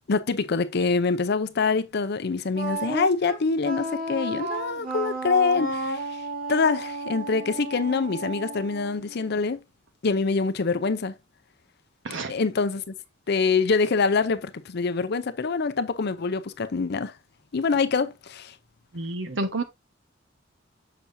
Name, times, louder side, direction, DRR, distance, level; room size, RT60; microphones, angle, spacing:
voice 1, 0.1-9.6 10.0-11.1 12.3-12.9 13.3-17.1 17.5-18.5, left 4 dB, 55° left, 0.6 m, -25 dB
Wind instrument woodwind instrument, 2.5-9.5, right 2 dB, 50° right, 2.8 m, -33 dB
voice 2, 18.9-19.6, right 2 dB, 70° right, 1.2 m, -29 dB
7.1 x 5.9 x 2.6 m
head